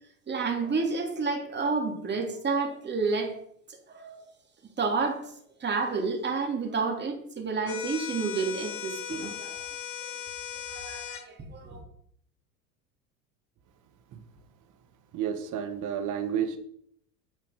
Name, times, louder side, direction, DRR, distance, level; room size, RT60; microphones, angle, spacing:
voice 1, 0.3-3.4 3.9-4.1 4.8-5.2 5.6-9.7 10.0-10.1 10.7-11.8, right 4 dB, 25° right, 2 dB, 3.0 m, -30 dB
sound 1, 7.7-11.3, left 9 dB, 40° left, 1.5 m, -38 dB
voice 2, 15.1-16.6, right 8 dB, 45° right, 8 dB, 1.8 m, -31 dB
9.2 x 8.7 x 5.3 m, 0.66 s
hypercardioid pair, 75°, 44 cm